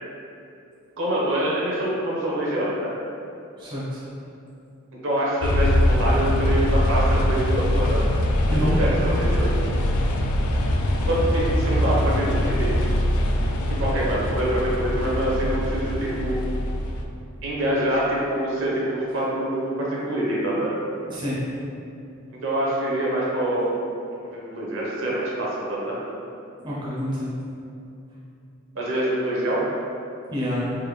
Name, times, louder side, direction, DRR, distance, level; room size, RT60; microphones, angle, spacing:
voice 1, 1.0-2.9 5.0-8.0 8.5-9.5 11.0-12.7 13.7-16.4 17.4-20.7 22.3-23.7 24.1-25.9 28.7-29.6, right 1 dB, 65° right, -6 dB, 0.8 m, -25 dB
voice 2, 3.6-4.0 8.5-8.8 21.1-21.4 26.6-27.4 30.3-30.7, equal, 20° right, -8 dB, 0.5 m, -27 dB
sound 1, 5.4-17.0, left 1 dB, 90° left, 0.3 m, -22 dB
3.5 x 2.2 x 3.1 m, 2.7 s
head